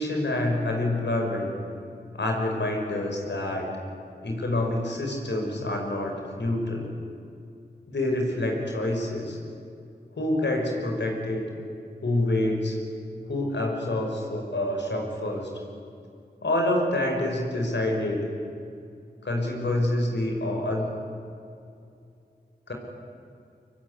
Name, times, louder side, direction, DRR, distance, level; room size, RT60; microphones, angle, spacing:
voice 1, 0.0-1.5 2.1-3.7 4.2-6.9 7.9-9.4 10.1-11.5 12.0-12.8 13.3-15.5 16.4-18.3 19.2-21.0 22.7-22.8, left 1 dB, 80° left, 1 dB, 5.9 m, -27 dB
24.5 x 23.5 x 9.9 m, 2.5 s
cardioid pair, 45°, 18 cm